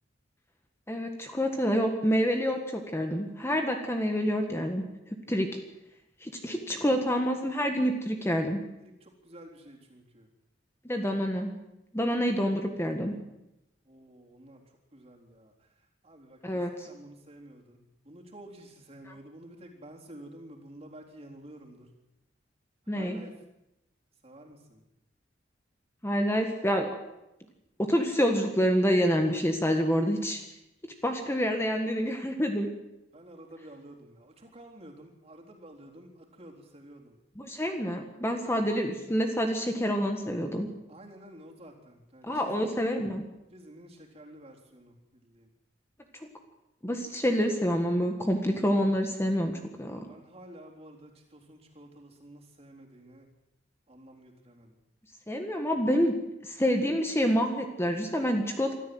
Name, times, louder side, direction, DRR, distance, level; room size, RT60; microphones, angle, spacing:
voice 1, 0.9-5.5 6.2-8.6 10.8-11.5 11.9-13.1 16.4-16.9 19.0-19.1 22.9-23.2 26.0-26.9 27.8-30.4 31.0-32.7 37.3-40.7 42.2-43.2 46.2-46.3 46.8-50.0 55.3-56.1 56.4-58.8, equal, 15° left, 4 dB, 1.5 m, -27 dB
voice 2, 6.4-7.0 8.2-8.3 8.8-8.9 9.2-10.3 13.9-14.6 14.9-15.5 16.0-16.4 16.9-17.8 18.1-21.9 22.9-23.3 24.2-24.8 33.1-37.1 40.9-42.8 43.5-44.9 45.2-45.5 49.9-53.3 53.9-54.7, right 1 dB, 35° right, 0 dB, 3.7 m, -50 dB
24.5 x 14.0 x 7.8 m, 0.90 s
head